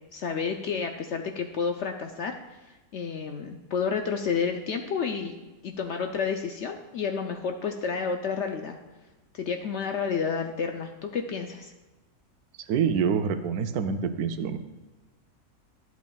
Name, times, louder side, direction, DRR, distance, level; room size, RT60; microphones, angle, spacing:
voice 1, 0.1-2.4 2.9-5.3 5.6-8.8 9.3-11.7, left 6 dB, 65° left, 4 dB, 0.7 m, -30 dB
voice 2, 12.7-14.6, right 6 dB, 85° right, 9 dB, 1.1 m, -26 dB
12.0 x 8.1 x 2.3 m, 1.1 s
omnidirectional pair, 1.6 m